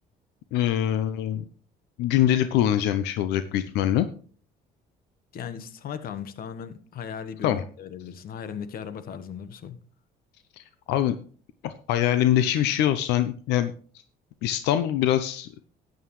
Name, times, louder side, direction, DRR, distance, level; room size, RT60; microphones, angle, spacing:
voice 1, 0.5-1.5 2.0-4.1 7.4-7.6 10.6-11.2 11.6-13.7 14.4-15.6, left 11 dB, 90° left, 0.7 m, -24 dB
voice 2, 5.3-9.8, left 7 dB, 60° left, 1.2 m, -37 dB
12.5 x 9.4 x 3.1 m
cardioid pair, 110°, 17 cm